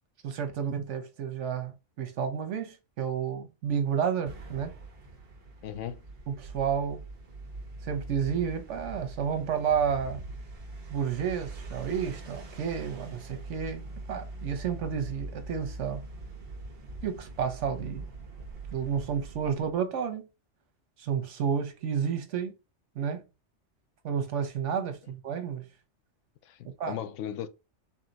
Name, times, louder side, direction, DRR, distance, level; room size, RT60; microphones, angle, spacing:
voice 1, 0.2-4.7 6.3-7.0 7.8-10.2 10.9-16.0 17.0-18.1 18.7-20.3 21.0-22.5 23.0-23.2 24.0-25.6 26.8-27.0, right 7 dB, 80° right, 1.1 m, -31 dB
sound 1, 4.3-19.8, right 2 dB, 55° right, 1.1 m, -43 dB
voice 2, 5.6-6.0 26.4-27.5, left 10 dB, 90° left, 0.9 m, -37 dB
3.7 x 2.8 x 3.9 m
omnidirectional pair, 1.2 m